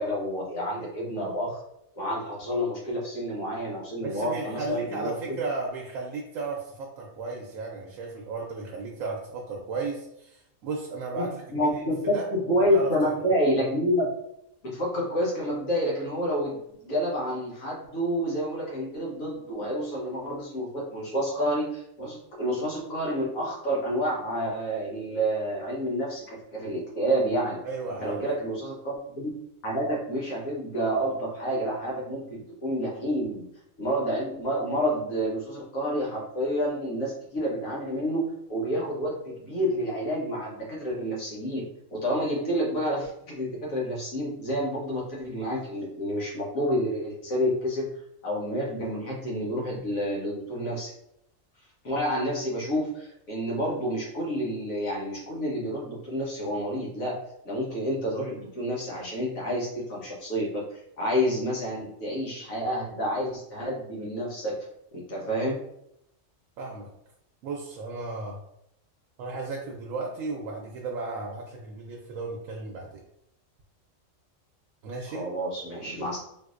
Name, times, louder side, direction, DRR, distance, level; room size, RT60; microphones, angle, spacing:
voice 1, 0.0-1.6 2.0-5.3 11.1-11.3 11.5-14.1 14.6-27.6 28.0-29.3 29.6-33.4 33.8-38.2 38.5-47.9 48.2-50.9 51.8-57.2 57.4-64.6 64.9-65.6 75.1-76.3, equal, 85° left, -4 dB, 1.5 m, -29 dB
voice 2, 4.0-11.8 12.1-12.3 12.7-13.1 27.6-28.2 66.6-66.9 67.4-68.4 69.2-73.0 74.8-75.3, right 3 dB, 85° right, -1 dB, 1.0 m, -34 dB
3.8 x 2.6 x 2.4 m, 0.78 s
omnidirectional pair, 1.4 m